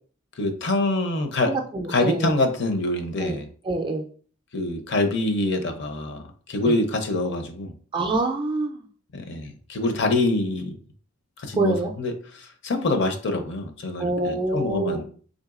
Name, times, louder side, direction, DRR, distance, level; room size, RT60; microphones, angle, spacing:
voice 1, 0.4-1.5 1.9-3.5 4.5-6.2 6.5-7.7 9.1-10.7 11.4-15.0, left 2 dB, 50° left, 6 dB, 0.6 m, -25 dB
voice 2, 1.5-2.3 3.2-3.4 3.6-4.1 6.6-6.7 7.9-8.8 11.6-11.9 14.0-15.0, right 2 dB, 20° right, 3 dB, 0.3 m, -25 dB
3.8 x 3.4 x 2.4 m, 0.44 s
head